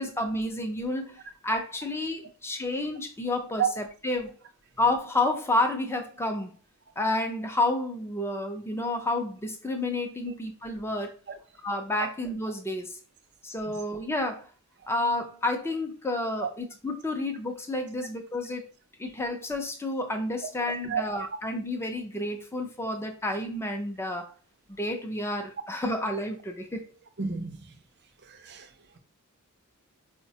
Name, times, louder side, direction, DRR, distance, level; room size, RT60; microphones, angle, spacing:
voice 1, 0.0-4.3 4.8-6.5 7.0-11.2 11.6-13.0 13.4-14.5 14.9-18.6 19.0-24.3 24.8-26.9, left 2 dB, 10° left, 0.5 m, -30 dB
voice 2, 27.2-27.8 28.2-29.0, right 7 dB, 50° right, 0.5 m, -31 dB
4.7 x 2.1 x 2.7 m
head